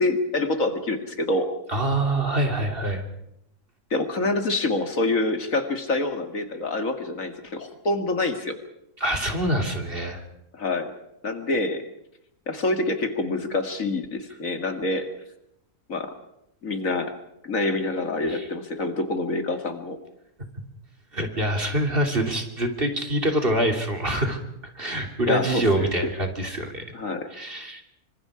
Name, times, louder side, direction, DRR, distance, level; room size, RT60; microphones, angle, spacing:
voice 1, 0.0-1.5 3.9-8.6 10.5-10.9 11.2-11.8 12.5-15.1 15.9-16.1 16.6-17.1 17.4-20.0 25.3-25.9 26.9-27.3, left 2 dB, 60° left, 7 dB, 2.4 m, -26 dB
voice 2, 1.7-3.0 9.0-10.2 18.3-18.4 21.1-24.4 24.7-26.8 27.3-27.8, right 1 dB, 35° right, 4 dB, 3.2 m, -25 dB
26.5 x 25.0 x 5.0 m, 0.78 s
omnidirectional pair, 1.6 m